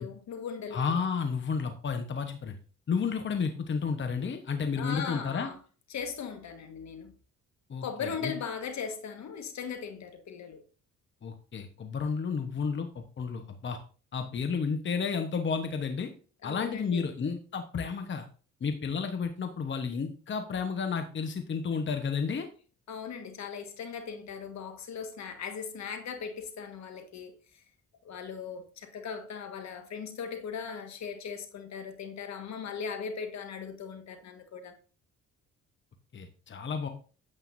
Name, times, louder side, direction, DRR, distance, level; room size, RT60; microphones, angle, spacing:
voice 1, 0.0-0.8 4.8-5.6 5.9-7.1 7.8-10.6 16.4-17.0 22.9-27.3 28.0-34.7, left 6 dB, 65° left, 1.6 m, -38 dB
voice 2, 0.7-2.6 2.9-5.5 7.7-8.3 11.2-13.8 14.1-16.1 16.4-18.3 18.6-22.5 36.1-36.9, left 5 dB, 40° left, 1.1 m, -32 dB
9.3 x 8.0 x 2.7 m
cardioid pair, 90°, 30 cm